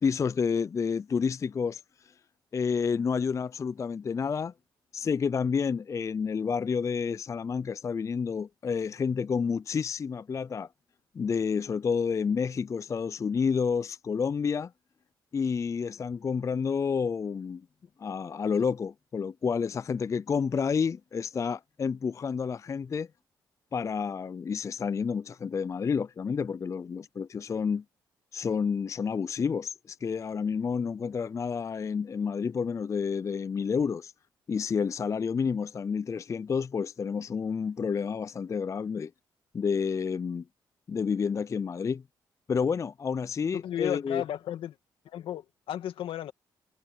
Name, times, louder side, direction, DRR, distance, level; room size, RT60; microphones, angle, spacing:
voice 1, 0.0-1.8 2.5-4.5 4.9-10.7 11.1-14.7 15.3-17.7 18.0-23.1 23.7-27.8 28.3-34.1 34.5-39.1 39.5-40.4 40.9-42.0 42.5-44.2, left 6 dB, 35° left, 0.3 m, -29 dB
voice 2, 43.5-44.8 45.0-46.3, left 11 dB, 75° left, 2.1 m, -34 dB
supercardioid pair, 65°, 9 cm